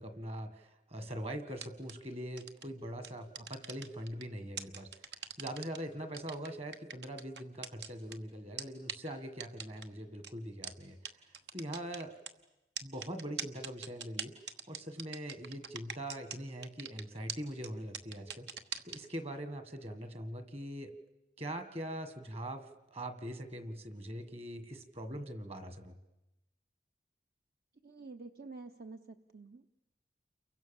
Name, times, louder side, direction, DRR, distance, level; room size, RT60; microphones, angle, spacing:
voice 1, 0.0-11.2 11.5-12.2 12.8-14.3 14.7-18.5 18.8-20.9 21.4-26.0, right 1 dB, 35° right, 10 dB, 1.8 m, -42 dB
sound 1, 1.5-1.9 2.4-2.6 3.0-4.2 4.6-5.8 6.1-8.1 8.6-8.7 8.9-9.0 9.4-9.8 10.2-10.3 10.6-10.7 11.0-11.1 11.3-12.3 12.8-16.4 16.6-17.0 17.3-17.4 17.6-17.7 17.9-19.0, right 7 dB, 75° right, 1.3 m, -41 dB
voice 2, 27.8-29.8, right 3 dB, 55° right, 7 dB, 0.8 m, -49 dB
29.5 x 23.5 x 7.2 m, 0.97 s
head